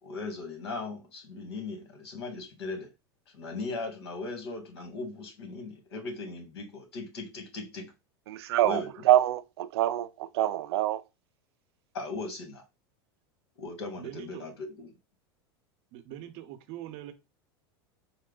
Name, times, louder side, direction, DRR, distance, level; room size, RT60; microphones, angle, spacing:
voice 1, 0.0-2.9 3.3-7.9 8.6-8.9 11.9-12.6 13.6-14.9, left 3 dB, 80° left, 1.7 m, -38 dB
voice 2, 8.3-11.0, right 13 dB, 80° right, 0.4 m, -25 dB
voice 3, 14.0-14.5 15.9-17.1, right 13 dB, 55° right, 0.8 m, -42 dB
4.4 x 2.2 x 3.8 m
hypercardioid pair, 110°, 13 cm